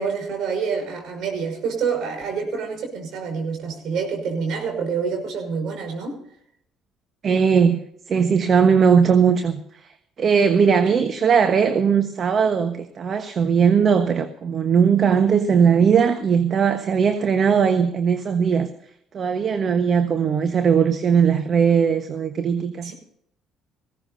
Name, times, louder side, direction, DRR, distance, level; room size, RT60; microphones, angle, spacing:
voice 1, 0.0-6.2 22.8-22.9, right 5 dB, 60° right, 2 dB, 5.6 m, -27 dB
voice 2, 7.2-7.8 8.1-9.6 10.2-18.7 19.1-22.9, right 6 dB, 45° right, 8 dB, 1.2 m, -19 dB
20.0 x 16.5 x 2.7 m, 0.70 s
hypercardioid pair, 55°, 0 cm